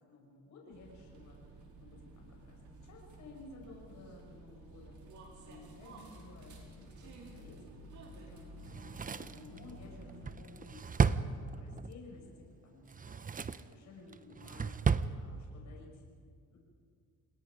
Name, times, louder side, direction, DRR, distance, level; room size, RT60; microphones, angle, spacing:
voice 1, 0.1-1.4 1.8-5.0 5.4-7.6 8.1-12.3 12.6-13.2 13.7-14.7 15.1-16.0 16.5-16.6, left 3 dB, 70° left, -1 dB, 5.9 m, -55 dB
sound 1, 0.7-10.4, right 2 dB, 75° right, 4.8 m, -52 dB
Drawer open or close, 8.6-11.9 12.8-13.7 14.1-15.1 15.4-15.5, right 5 dB, 30° right, 0.8 m, -33 dB
28.5 x 20.0 x 5.1 m, 2.1 s
cardioid pair, 90°, 30 cm